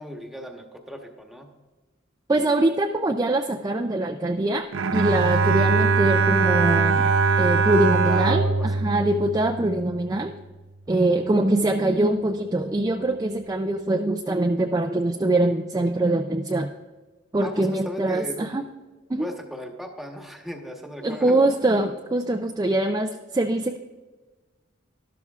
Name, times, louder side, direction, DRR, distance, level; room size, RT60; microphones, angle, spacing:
voice 1, 0.0-1.5 7.9-9.1 17.4-18.4 19.2-21.4, equal, ahead, 3 dB, 1.1 m, -37 dB
voice 2, 2.3-7.1 7.4-10.3 10.9-16.7 17.3-18.6 19.1-19.3 21.0-23.8, right 2 dB, 20° right, 4 dB, 0.4 m, -23 dB
Bowed string instrument, 4.7-10.0, right 4 dB, 75° right, 0.6 m, -21 dB
13.0 x 12.0 x 2.4 m, 1.3 s
head